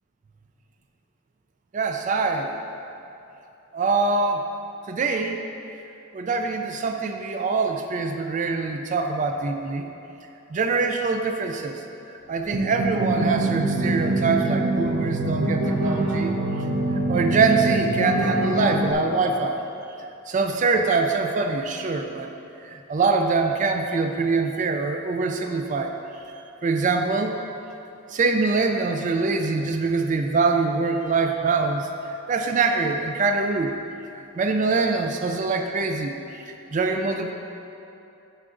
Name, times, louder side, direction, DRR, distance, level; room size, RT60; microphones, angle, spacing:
voice 1, 1.7-2.6 3.7-4.5 4.9-5.4 6.1-9.9 10.5-11.8 12.3-16.3 17.1-19.6 20.3-22.3 22.6-25.9 26.6-27.4 28.1-31.9 32.3-33.8 34.4-36.1 36.7-37.3, right 4 dB, 35° right, 4 dB, 0.3 m, -24 dB
sound 1, 12.4-18.9, right 2 dB, 85° right, 0.7 m, -24 dB
9.7 x 5.7 x 2.5 m, 2.8 s
head